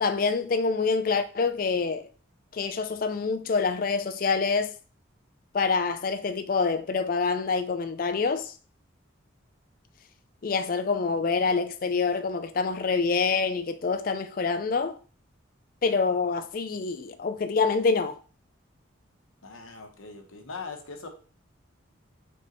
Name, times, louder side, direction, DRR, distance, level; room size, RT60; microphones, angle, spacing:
voice 1, 0.0-2.1 2.5-4.7 5.5-8.5 10.4-15.0 15.8-18.2, left 4 dB, 45° left, 0.4 m, -26 dB
voice 2, 19.4-21.1, left 4 dB, 85° left, 0.9 m, -40 dB
4.9 x 3.5 x 3.0 m
head